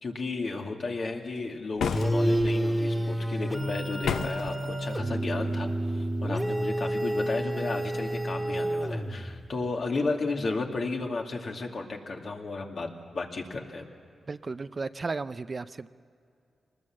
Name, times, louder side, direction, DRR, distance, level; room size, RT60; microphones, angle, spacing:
voice 1, 0.0-13.9, left 3 dB, 55° left, 1 dB, 2.4 m, -33 dB
sound 1, 1.8-2.5 4.0-4.5, left 7 dB, 90° left, 0.7 m, -31 dB
sound 2, 1.9-9.4, right 1 dB, ahead, 2.0 m, -29 dB
voice 2, 14.3-15.9, right 4 dB, 40° right, 13 dB, 0.5 m, -34 dB
25.0 x 20.0 x 7.4 m, 2.5 s
cardioid pair, 85°, 0 cm